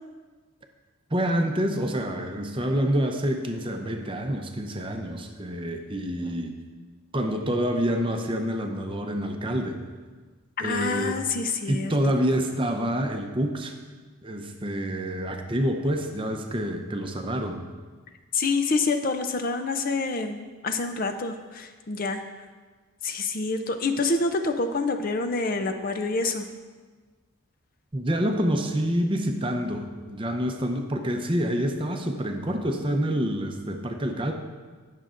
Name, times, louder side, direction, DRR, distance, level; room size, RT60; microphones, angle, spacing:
voice 1, 1.1-6.5 7.1-9.8 10.6-11.2 11.7-13.7 14.2-17.6 27.9-34.3, equal, 25° right, 4 dB, 0.6 m, -27 dB
voice 2, 10.6-12.1 18.3-22.2 23.0-26.5, left 3 dB, 40° left, 7 dB, 0.5 m, -27 dB
19.0 x 6.6 x 2.5 m, 1.4 s
head